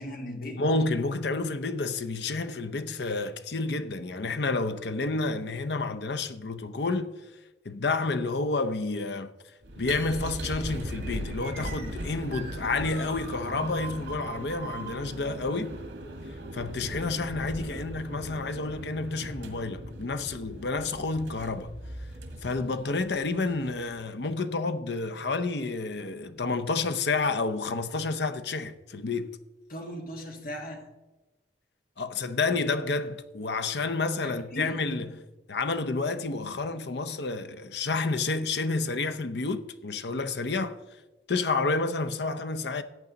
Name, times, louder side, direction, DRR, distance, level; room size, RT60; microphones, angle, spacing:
voice 1, 0.0-0.6 29.7-30.9 34.2-34.8, equal, 50° left, 1.6 m, -38 dB
voice 2, 0.6-7.1 7.6-9.3 9.8-15.8 16.5-21.7 22.4-29.3 32.0-35.2 35.5-40.8 41.3-42.8, left 3 dB, 65° left, 0.7 m, -30 dB
sound 1, 9.6-24.1, right 1 dB, 85° right, 1.8 m, -39 dB
sound 2, 10.9-17.0, right 5 dB, 55° right, 2.2 m, -43 dB
14.5 x 8.6 x 4.0 m
head